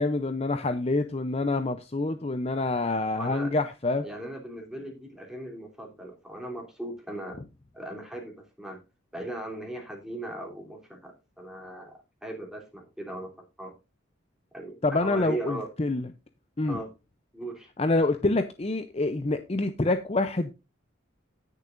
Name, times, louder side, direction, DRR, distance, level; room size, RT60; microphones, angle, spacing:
voice 1, 0.0-4.0 14.8-16.1 16.6-16.8 17.8-20.5, left 2 dB, 30° left, 9 dB, 0.6 m, -27 dB
voice 2, 3.1-3.5 4.0-7.4 7.7-8.8 9.1-13.8 14.5-15.7 16.6-16.9 17.3-17.7, right 1 dB, 5° right, 0 dB, 3.1 m, -38 dB
18.5 x 6.8 x 2.6 m, 0.26 s
head